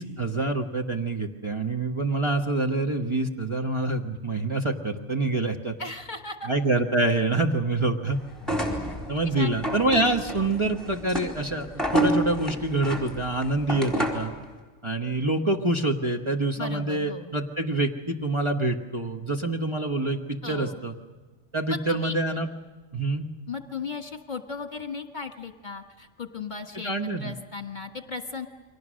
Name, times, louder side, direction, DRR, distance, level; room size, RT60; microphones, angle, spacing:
voice 1, 0.0-5.7 6.4-8.2 9.1-11.7 11.9-14.3 14.8-20.9 21.5-22.5 22.9-23.3 26.8-27.3, right 2 dB, 25° right, 1 dB, 1.2 m, -26 dB
voice 2, 5.8-6.5 9.2-9.5 16.6-17.3 20.4-20.8 21.7-22.1 23.5-26.9 27.2-28.5, left 4 dB, 40° left, 5 dB, 1.6 m, -36 dB
sound 1, 8.4-14.3, right 1 dB, ahead, 4.2 m, -29 dB
30.0 x 23.5 x 6.4 m, 1.3 s
omnidirectional pair, 1.2 m